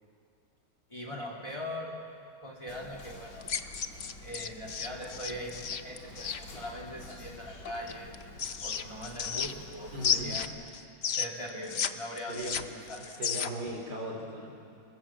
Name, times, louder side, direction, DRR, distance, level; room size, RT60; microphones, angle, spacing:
voice 1, 0.9-1.9 2.4-3.4 4.2-8.1 8.6-10.5 11.1-13.1, equal, 15° left, -1 dB, 2.8 m, -41 dB
Whispering, 2.7-10.4, left 2 dB, 75° left, 2.8 m, -49 dB
sound 1, 3.4-6.4 7.9-9.7 10.0-11.9 12.2-13.7, left 7 dB, 50° left, 0.8 m, -33 dB
voice 2, 9.9-10.4 12.3-14.5, right 1 dB, 70° right, 0 dB, 4.8 m, -39 dB
29.5 x 20.0 x 7.5 m, 2.4 s
omnidirectional pair, 1.9 m